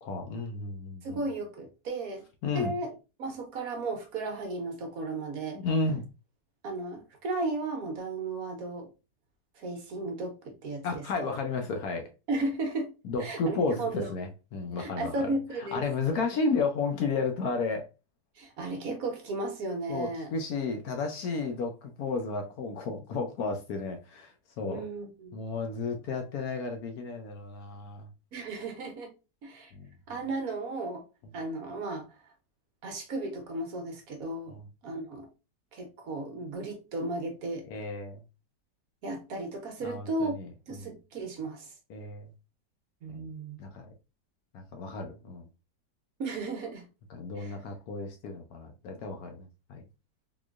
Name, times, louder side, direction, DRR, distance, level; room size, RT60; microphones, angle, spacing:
voice 1, 0.0-1.3 2.4-2.7 5.5-6.1 10.8-12.1 13.0-15.1 15.6-17.9 19.9-24.8 25.3-28.1 29.7-29.9 34.5-34.7 37.7-38.2 39.8-40.9 41.9-42.3 43.1-43.2 43.6-43.9 44.5-45.5 47.1-49.8, left 4 dB, 70° left, 1.0 m, -33 dB
voice 2, 1.0-2.2 2.5-2.9 3.2-5.6 6.6-8.9 9.6-11.0 12.3-12.9 13.2-14.1 14.8-15.8 18.4-20.3 24.6-25.4 28.3-29.1 29.4-29.7 30.1-31.0 31.3-32.1 32.8-35.3 35.7-37.7 39.0-40.4 40.7-41.7 43.0-43.6 46.2-46.8 47.4-47.6, right 2 dB, 60° right, 1.2 m, -35 dB
3.7 x 3.0 x 2.3 m
omnidirectional pair, 1.8 m